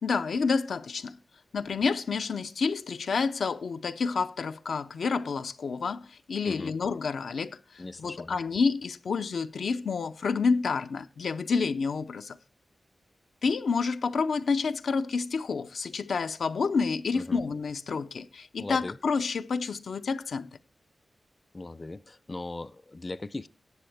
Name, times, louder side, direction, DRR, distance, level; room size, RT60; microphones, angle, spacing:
voice 1, 0.0-1.2 1.5-12.4 13.4-20.5, left 5 dB, 85° left, 0.5 m, -29 dB
voice 2, 7.8-8.4 17.1-17.4 18.6-19.0 21.5-23.5, left 2 dB, 30° left, 0.4 m, -38 dB
18.0 x 7.1 x 3.3 m
wide cardioid pair, 105°, 0 cm